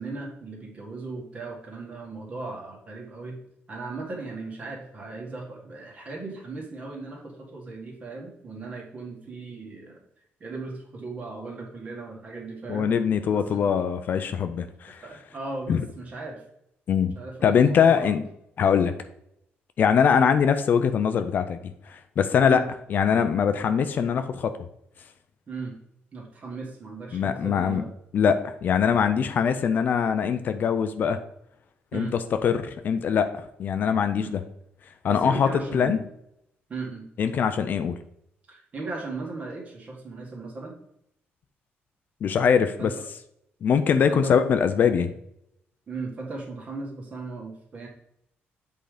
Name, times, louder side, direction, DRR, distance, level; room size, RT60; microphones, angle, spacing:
voice 1, 0.0-3.4 3.7-10.0 10.4-12.9 13.3-13.6 15.0-16.4 17.2-18.1 22.4-22.7 25.5-25.7 26.1-27.9 31.9-32.2 34.2-34.3 35.1-36.1 36.7-37.0 38.5-40.8 42.8-43.0 44.1-44.4 45.9-47.9, right 3 dB, 35° right, 0 dB, 1.7 m, -37 dB
voice 2, 12.7-15.0 15.7-15.8 16.9-17.2 17.4-18.2 18.6-18.9 19.8-21.6 21.9-22.6 22.9-24.5 27.1-27.8 28.1-31.2 31.9-34.4 35.0-36.0 37.2-38.0 42.2-42.9 43.6-45.1, left 7 dB, 50° left, 9 dB, 0.5 m, -22 dB
7.9 x 3.8 x 5.0 m, 0.76 s
cardioid pair, 160°, 4 cm